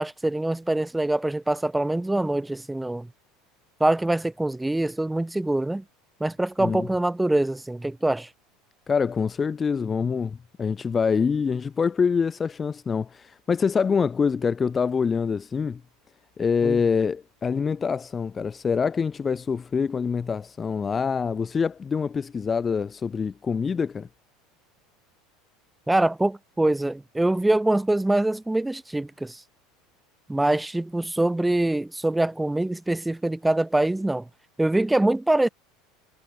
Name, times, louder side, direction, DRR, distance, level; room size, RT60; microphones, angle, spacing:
voice 1, 0.0-3.1 3.8-5.8 6.2-8.3 16.6-16.8 25.9-29.4 30.3-34.3 34.6-35.5, right 1 dB, 5° right, 1.9 m, -24 dB
voice 2, 8.9-15.8 16.4-24.1, left 6 dB, 20° left, 0.8 m, -25 dB
supercardioid pair, 150°, 0 cm